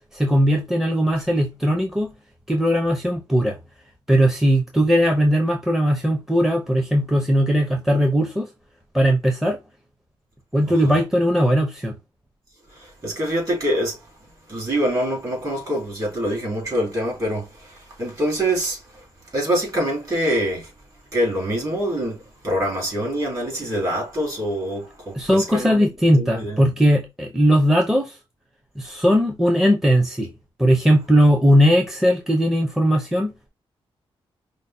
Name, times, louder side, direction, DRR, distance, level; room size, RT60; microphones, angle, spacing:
voice 1, 0.1-2.1 2.5-3.6 4.1-8.5 8.9-9.6 10.5-11.9 25.1-28.2 28.8-30.3 30.6-33.5, equal, 5° right, 0.6 m, -19 dB
voice 2, 12.7-14.0 14.5-19.0 19.3-20.7 21.1-25.8 26.2-26.6, equal, 35° right, 2.9 m, -25 dB
5.1 x 2.1 x 4.2 m
wide cardioid pair, 130°, 10 cm